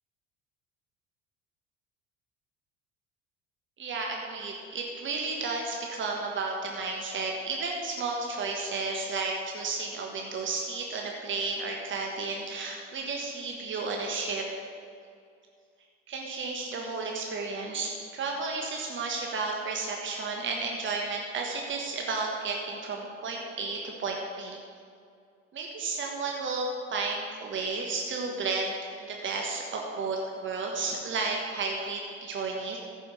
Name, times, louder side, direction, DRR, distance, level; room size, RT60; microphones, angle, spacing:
voice 1, 3.8-14.5 16.1-24.6 25.5-28.7 29.1-32.8, right 3 dB, 30° right, 0 dB, 1.5 m, -32 dB
14.0 x 5.7 x 6.3 m, 2.3 s
figure-of-eight pair, 60°, 37 cm